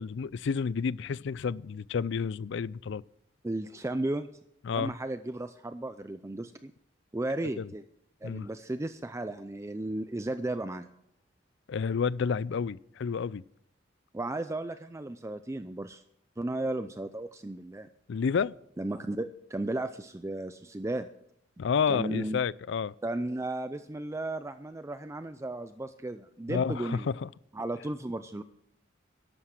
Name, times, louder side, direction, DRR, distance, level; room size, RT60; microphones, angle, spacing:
voice 1, 0.0-3.0 4.6-4.9 7.6-7.7 8.2-8.5 11.7-13.4 18.1-18.5 21.6-22.9 26.5-27.3, left 6 dB, 65° left, 0.4 m, -30 dB
voice 2, 3.4-4.3 4.7-6.7 7.1-7.8 8.2-10.9 14.1-16.0 16.4-17.9 18.8-21.1 21.9-22.4 23.0-27.1 27.5-28.4, right 2 dB, 15° right, 0.5 m, -34 dB
13.0 x 11.5 x 6.0 m
head